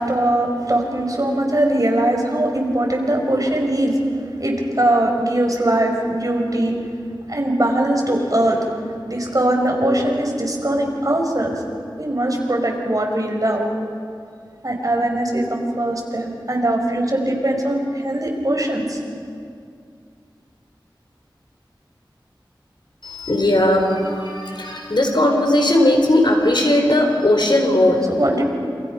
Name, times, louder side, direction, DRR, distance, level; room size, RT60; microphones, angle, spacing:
voice 1, 0.0-4.0 4.4-6.8 7.3-8.8 9.1-11.6 12.0-13.7 14.6-19.0 28.2-28.4, right 1 dB, 45° right, 1 dB, 5.3 m, -21 dB
voice 2, 23.0-28.1, left 1 dB, 70° left, 2 dB, 4.5 m, -17 dB
28.5 x 28.0 x 5.8 m, 2.3 s
wide cardioid pair, 45°, 8 cm